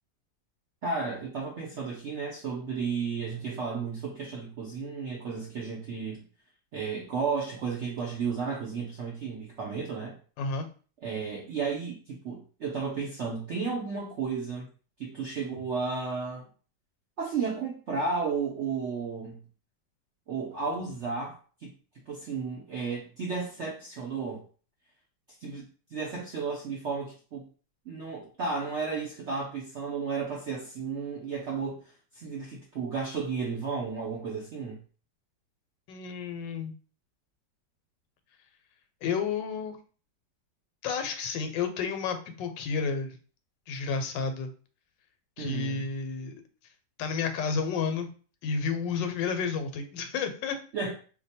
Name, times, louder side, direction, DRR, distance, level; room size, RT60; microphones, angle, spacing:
voice 1, 0.8-6.2 6.7-10.2 11.0-14.7 15.0-16.5 17.2-19.4 20.3-21.4 21.6-21.7 22.1-24.4 25.4-27.5 27.9-34.8 45.4-45.9 50.7-50.9, right 5 dB, 75° right, -2 dB, 0.6 m, -33 dB
voice 2, 35.9-36.7 39.0-39.8 40.8-43.1 43.7-44.5 45.4-46.3 47.0-48.1 48.4-50.6, left 5 dB, 85° left, 7 dB, 1.3 m, -31 dB
2.8 x 2.2 x 4.1 m, 0.39 s
omnidirectional pair, 1.9 m